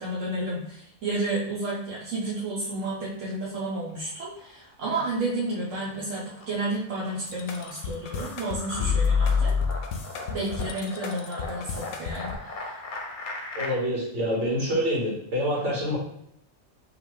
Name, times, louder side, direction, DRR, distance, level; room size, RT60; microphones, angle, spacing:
voice 1, 0.0-9.5 10.3-12.8, right 2 dB, 85° right, -6 dB, 1.2 m, -31 dB
sound 1, 3.8-4.6 4.9-13.7, left 2 dB, 50° left, 0.7 m, -39 dB
sound 2, 7.3-12.4, left 5 dB, 85° left, 0.9 m, -28 dB
voice 2, 13.6-16.0, equal, 65° right, -4 dB, 1.7 m, -26 dB
5.3 x 2.4 x 3.1 m, 0.73 s
omnidirectional pair, 1.3 m